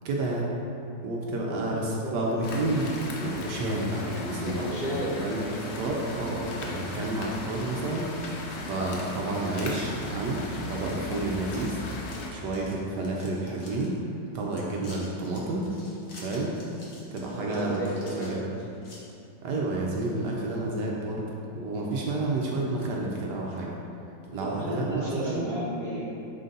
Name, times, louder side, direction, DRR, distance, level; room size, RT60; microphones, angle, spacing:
voice 1, 0.0-0.5 1.0-2.9 3.2-4.8 5.2-11.8 12.3-14.0 14.3-15.7 16.2-16.5 17.1-18.5 19.4-21.3 21.5-23.7 24.3-25.5, right 2 dB, 70° right, -2 dB, 1.2 m, -30 dB
sound 1, 2.4-12.3, left 2 dB, 75° left, 0.6 m, -37 dB
sound 2, 4.2-4.7 5.1-5.2 5.9-6.0 6.4-6.9 7.3-8.3 8.6-8.7 9.6-10.0 10.4-10.8 11.1-11.2 11.4-11.8 12.0-13.9 14.3-19.0, left 1 dB, 50° left, 1.3 m, -50 dB
voice 2, 4.4-5.3 17.0-18.5 24.3-26.1, right 1 dB, 35° left, -10 dB, 1.6 m, -33 dB
6.3 x 3.9 x 3.9 m, 2.6 s
omnidirectional pair, 2.0 m